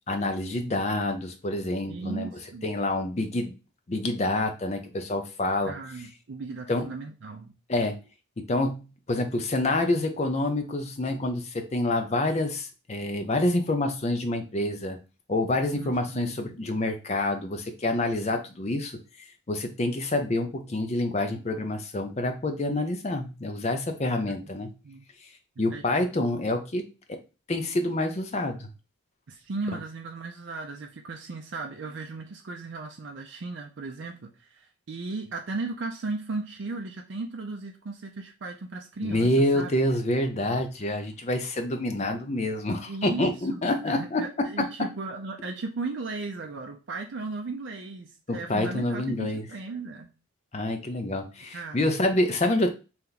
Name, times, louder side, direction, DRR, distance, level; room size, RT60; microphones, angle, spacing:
voice 1, 0.1-2.3 2.6-3.5 3.9-5.7 6.7-6.9 7.7-8.0 8.4-15.0 15.3-19.0 19.5-24.7 25.6-27.2 27.5-28.7 39.0-44.2 44.6-44.7 48.3-49.5 50.5-52.7, left 1 dB, 30° left, 5 dB, 0.5 m, -27 dB
voice 2, 1.9-2.7 5.6-7.5 15.8-16.4 24.4-24.5 24.8-25.0 25.7-25.9 29.3-39.7 42.9-50.1 51.5-52.0, right 3 dB, 55° right, 2 dB, 0.5 m, -36 dB
3.3 x 2.9 x 3.9 m, 0.32 s
head